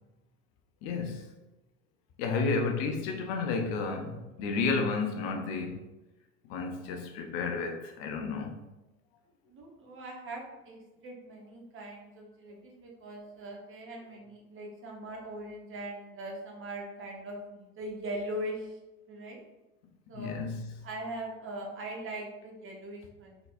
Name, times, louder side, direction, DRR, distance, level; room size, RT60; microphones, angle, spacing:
voice 1, 0.8-1.3 2.2-5.8 6.5-8.6 20.1-20.7, left 4 dB, 50° left, 0.6 m, -32 dB
voice 2, 2.2-2.7 9.5-18.8 19.1-19.4 20.1-20.3 20.8-23.4, right 1 dB, 30° right, 1.1 m, -41 dB
3.9 x 3.8 x 2.5 m
figure-of-eight pair, 70°, 40 cm